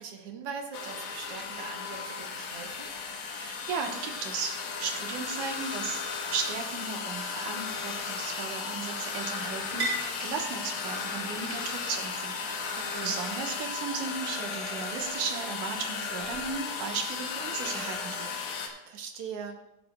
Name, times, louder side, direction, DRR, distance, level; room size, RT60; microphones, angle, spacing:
voice 1, 0.0-2.9 12.7-13.2 18.9-19.6, right 6 dB, 60° right, 3 dB, 1.7 m, -41 dB
sound 1, 0.7-18.7, left 5 dB, 75° left, 2.6 m, -35 dB
voice 2, 3.3-4.5 4.8-12.4 12.6-18.3, right 5 dB, 85° right, 2 dB, 2.8 m, -36 dB
sound 2, 6.7-14.0, right 1 dB, 35° right, 4.0 m, -43 dB
16.5 x 9.4 x 2.3 m, 0.89 s
omnidirectional pair, 3.5 m